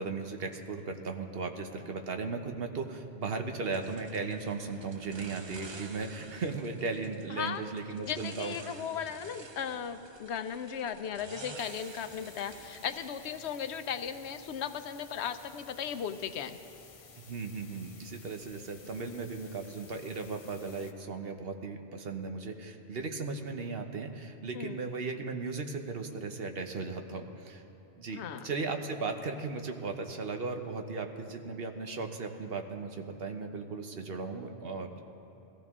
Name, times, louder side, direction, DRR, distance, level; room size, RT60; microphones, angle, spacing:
voice 1, 0.0-8.8 17.3-27.6 28.0-35.0, right 4 dB, 60° right, 5 dB, 1.1 m, -37 dB
sound 1, 3.7-13.8, right 3 dB, 35° right, 0.5 m, -50 dB
voice 2, 7.3-7.6 8.0-16.6 24.5-24.8 28.1-28.5, left 8 dB, 80° left, 10 dB, 0.9 m, -37 dB
sound 2, 11.6-20.9, left 5 dB, 40° left, 0.5 m, -54 dB
20.5 x 15.0 x 3.6 m, 2.9 s
omnidirectional pair, 1.1 m